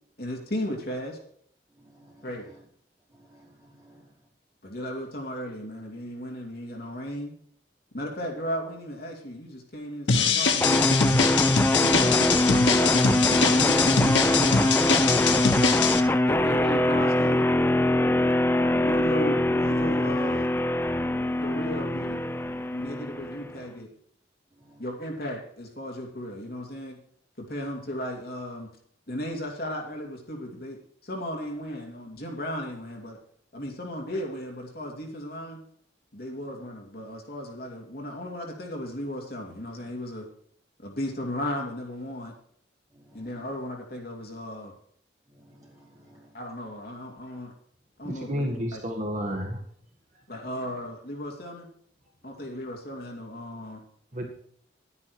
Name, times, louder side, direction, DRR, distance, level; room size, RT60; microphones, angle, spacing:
voice 1, 0.2-1.2 2.2-2.5 4.6-7.3 7.9-10.8 11.7-14.9 16.2-17.5 18.6-20.5 21.4-22.2 22.7-23.9 24.8-27.0 27.4-28.7 29.1-33.2 33.5-35.6 36.1-40.3 40.8-42.3 43.1-44.7 46.3-47.5 48.0-48.8 50.3-51.7 52.2-53.8, equal, 55° left, 2.6 m, -35 dB
voice 2, 1.7-2.6 3.1-4.2 24.5-25.2 36.3-36.6 40.9-41.0 42.9-43.6 45.3-46.4 50.3-50.5 52.2-52.6, right 1 dB, 20° right, 4.4 m, -57 dB
sound 1, 10.1-16.0, left 5 dB, 85° left, 1.2 m, -23 dB
sound 2, 10.6-23.6, left 1 dB, 10° left, 0.5 m, -23 dB
voice 3, 48.0-49.6 54.1-54.3, equal, 40° right, 1.8 m, -31 dB
11.5 x 9.7 x 4.7 m
head